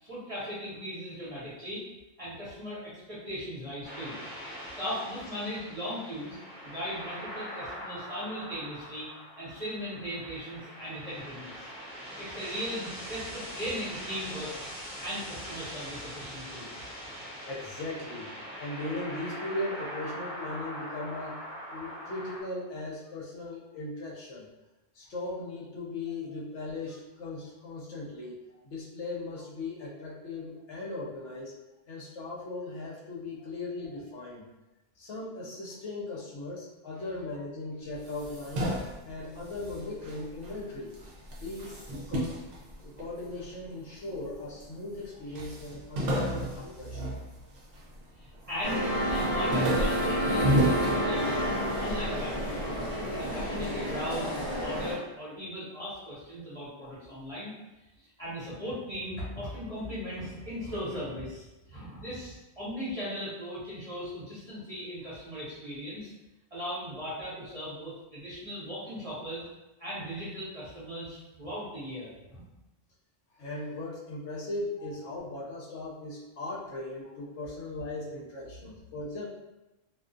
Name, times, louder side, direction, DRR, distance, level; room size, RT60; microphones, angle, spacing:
voice 1, 0.0-1.8 2.2-4.1 4.8-6.4 6.6-9.1 9.4-14.5 15.0-16.7 48.2-52.6 53.2-57.5 58.0-66.1 66.5-69.4 69.8-72.4 74.8-74.9, equal, 30° right, -11 dB, 0.9 m, -38 dB
sound 1, 3.8-22.4, equal, 5° left, 0.7 m, -42 dB
voice 2, 17.4-18.3 18.6-21.4 21.7-24.5 24.9-28.4 28.6-31.5 31.9-34.5 35.0-38.7 39.0-40.9 41.4-42.4 42.8-47.1 73.3-79.3, left 2 dB, 70° left, -5 dB, 0.9 m, -38 dB
sound 2, 37.9-40.6 40.9-43.4 44.0-44.7 45.0-45.1 45.4-47.9 48.3-48.8 49.1-51.7, right 1 dB, 55° right, 0.4 m, -32 dB
sound 3, 48.6-54.9, equal, 45° left, 0.6 m, -29 dB
2.4 x 2.3 x 2.5 m, 1.0 s
omnidirectional pair, 1.3 m